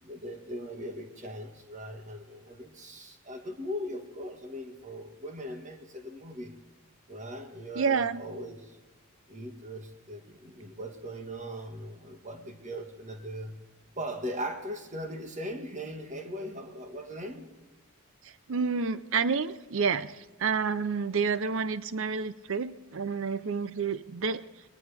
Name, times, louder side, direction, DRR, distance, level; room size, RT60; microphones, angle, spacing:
voice 1, 0.0-6.6 7.1-8.8 9.3-13.6 13.9-17.5, equal, 35° right, 5 dB, 1.7 m, -39 dB
voice 2, 7.8-8.2 18.2-24.5, right 5 dB, 65° right, 14 dB, 0.6 m, -29 dB
21.0 x 19.0 x 3.5 m, 1.2 s
head